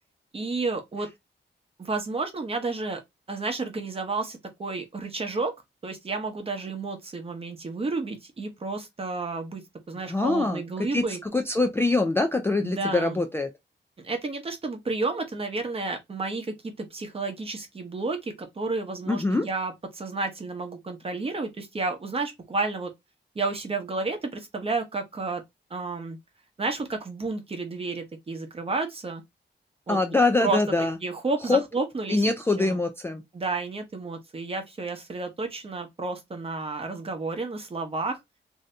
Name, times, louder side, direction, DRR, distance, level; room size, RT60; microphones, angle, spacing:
voice 1, 0.3-1.1 1.8-3.0 3.3-5.5 5.8-9.6 9.9-11.2 12.6-13.2 14.0-22.9 23.3-25.4 25.7-26.2 26.6-29.2 29.9-30.0 30.4-30.6 31.0-32.3 32.6-32.8 33.3-38.2, right 3 dB, 30° right, 0.8 m, -31 dB
voice 2, 10.1-10.6 10.9-13.5 19.1-19.5 29.9-31.0 31.5-31.6 32.1-33.2, left 2 dB, 10° left, 0.3 m, -24 dB
2.7 x 2.6 x 3.2 m
wide cardioid pair, 140°, 19 cm